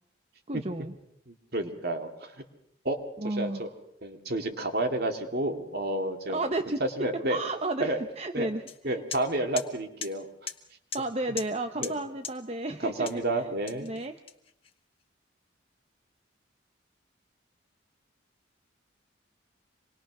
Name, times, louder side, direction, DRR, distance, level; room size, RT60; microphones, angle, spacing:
voice 1, 0.5-0.9 3.2-3.7 6.3-9.0 10.9-13.1 13.3-13.5 13.8-14.1, right 2 dB, 30° right, 6 dB, 0.9 m, -33 dB
voice 2, 1.3-2.3 2.8-3.0 3.2-3.7 4.0-6.4 7.0-7.4 7.8-8.0 8.3-8.5 8.8-10.3 11.8-11.9 12.8-13.9, right 1 dB, 55° right, 5 dB, 2.4 m, -30 dB
sound 1, 8.7-8.8 9.1-9.2 9.6-9.7 10.0-10.1 10.5-10.6 10.9-11.0 11.4-11.5 11.8-11.9 12.2-12.3 13.1-13.2 13.7-14.7, left 7 dB, 30° left, 1.4 m, -37 dB
26.0 x 21.5 x 6.2 m, 0.76 s
head